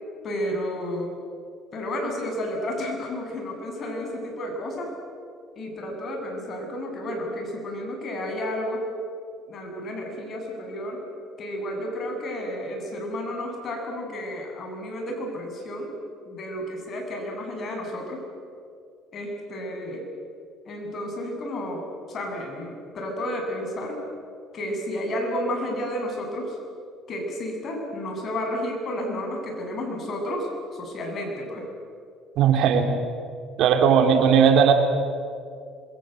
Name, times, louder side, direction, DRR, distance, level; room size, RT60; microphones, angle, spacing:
voice 1, 0.2-1.2 1.7-4.9 5.6-8.9 9.5-11.0 11.4-15.9 16.2-18.2 19.1-20.0 20.6-24.0 24.5-26.6 27.1-31.7, left 1 dB, 45° left, 1 dB, 7.9 m, -31 dB
voice 2, 32.4-32.9 33.6-34.7, right 7 dB, 70° right, 5 dB, 3.4 m, -17 dB
27.0 x 22.5 x 8.0 m, 2.3 s
cardioid pair, 105°, 0 cm